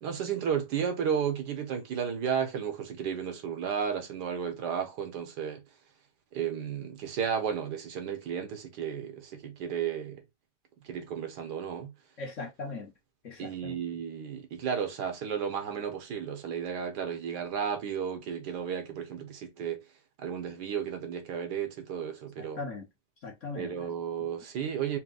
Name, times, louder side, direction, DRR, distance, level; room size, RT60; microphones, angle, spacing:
voice 1, 0.0-5.6 6.3-10.2 10.8-11.9 13.4-19.8 20.2-22.6 23.6-25.0, right 7 dB, 70° right, 1.4 m, -33 dB
voice 2, 12.2-12.9 13.2-13.7 22.4-22.8 23.2-23.7, left 3 dB, 50° left, 1.2 m, -39 dB
4.4 x 2.1 x 3.8 m
omnidirectional pair, 1.9 m